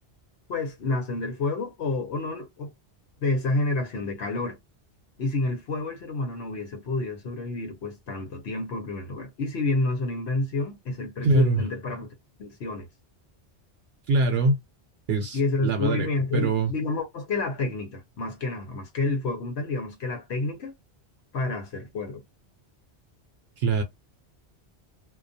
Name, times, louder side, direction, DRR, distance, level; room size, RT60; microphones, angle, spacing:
voice 1, 0.5-2.7 3.2-4.6 5.2-12.1 12.4-12.9 15.3-20.7 21.3-22.2, left 2 dB, 80° left, 1.1 m, -29 dB
voice 2, 11.2-11.6 14.1-14.6 15.1-16.1 16.3-16.7 23.6-23.8, right 3 dB, 70° right, 0.8 m, -23 dB
2.3 x 2.3 x 2.6 m
omnidirectional pair, 1.1 m